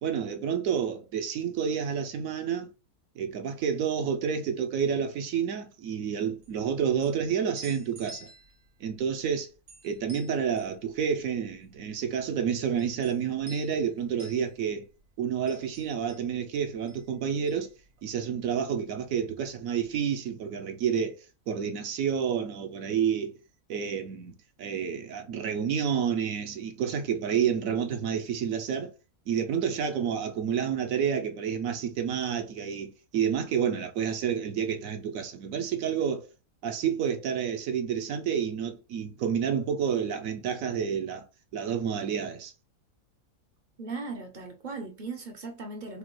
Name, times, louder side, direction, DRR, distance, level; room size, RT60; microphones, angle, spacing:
voice 1, 0.0-2.7 3.2-8.3 8.8-9.5 9.8-14.8 15.2-17.7 18.0-21.2 21.5-23.4 23.7-24.3 24.6-28.9 29.3-36.3 36.6-41.3 41.5-42.5, right 7 dB, 70° right, 1.0 m, -29 dB
sound 1, 6.4-18.6 18.9-20.0, right 1 dB, 85° right, 1.7 m, -52 dB
voice 2, 43.8-46.0, right 3 dB, 50° right, 0.6 m, -38 dB
5.0 x 2.3 x 3.0 m
omnidirectional pair, 1.6 m